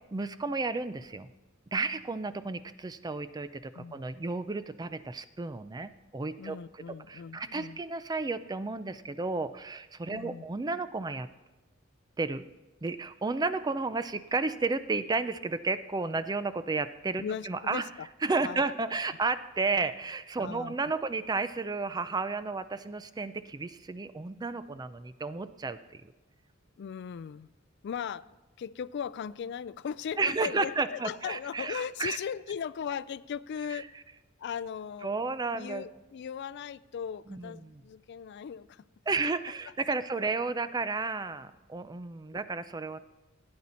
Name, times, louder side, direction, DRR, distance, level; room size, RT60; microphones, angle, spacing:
voice 1, 0.1-1.3 1.7-6.6 7.1-11.3 12.2-12.5 12.8-17.9 18.2-26.1 30.2-32.2 33.7-33.8 35.0-35.8 37.3-37.8 39.1-43.0, right 3 dB, 20° right, 13 dB, 0.4 m, -32 dB
voice 2, 6.4-7.8 10.1-10.5 17.2-18.1 18.4-18.6 20.4-20.7 26.8-27.5 27.8-33.9 34.4-35.2 35.5-38.8, left 7 dB, 55° left, 18 dB, 0.3 m, -38 dB
16.0 x 9.6 x 4.3 m, 1.1 s
head